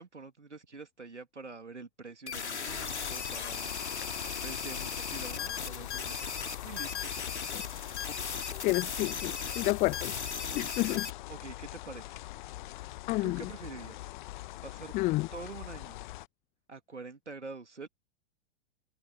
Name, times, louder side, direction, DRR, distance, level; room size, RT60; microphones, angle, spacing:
voice 1, 0.0-3.8 4.4-7.1 11.3-12.2 13.2-14.1 14.6-14.9 15.3-16.0 16.7-17.9, right 4 dB, 80° right, 2.7 m, -46 dB
sound 1, 2.3-11.1, left 6 dB, 70° left, 2.8 m, -37 dB
sound 2, 2.7-16.3, left 17 dB, 45° left, 1.1 m, -43 dB
voice 2, 8.6-10.1 10.5-11.1 13.1-13.4 14.9-15.3, left 21 dB, 20° left, 0.6 m, -29 dB
figure-of-eight pair, 100°, 35 cm